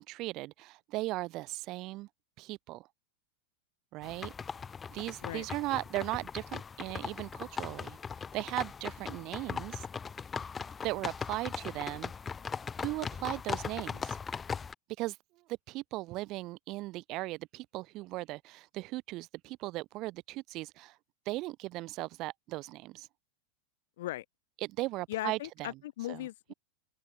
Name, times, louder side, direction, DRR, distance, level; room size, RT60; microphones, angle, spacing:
voice 1, 0.0-2.1 2.4-2.9 3.9-4.3 4.9-8.0 8.3-9.9 10.8-12.1 12.8-14.2 15.0-15.2 15.5-21.0 21.2-23.1 24.6-25.7 26.1-26.2, right 19 dB, 40° right, 2.6 m, -37 dB
sound 1, 4.0-14.7, left 6 dB, 15° left, 1.1 m, -39 dB
voice 2, 25.1-26.5, left 15 dB, 55° left, 1.6 m, -38 dB
figure-of-eight pair, 90°, 0 cm